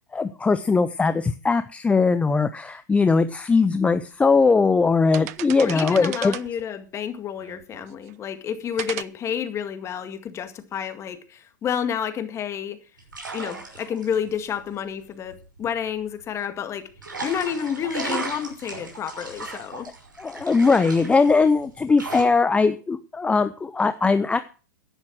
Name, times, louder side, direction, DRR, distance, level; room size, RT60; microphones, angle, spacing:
voice 1, 0.1-6.3 20.2-24.4, left 4 dB, 10° left, 11 dB, 0.7 m, -20 dB
sound 1, 3.5-3.6 4.2-4.6 4.9-6.6 7.4-8.1 8.8-9.0, right 17 dB, 55° right, 0.7 m, -36 dB
voice 2, 5.6-12.8 13.3-16.9 17.2-19.9, left 8 dB, 25° left, 9 dB, 2.0 m, -30 dB
sound 2, 13.0-16.2 17.0-22.2, right 3 dB, 90° right, 5.8 m, -36 dB
11.0 x 11.0 x 6.1 m, 0.36 s
hypercardioid pair, 105°, 10 cm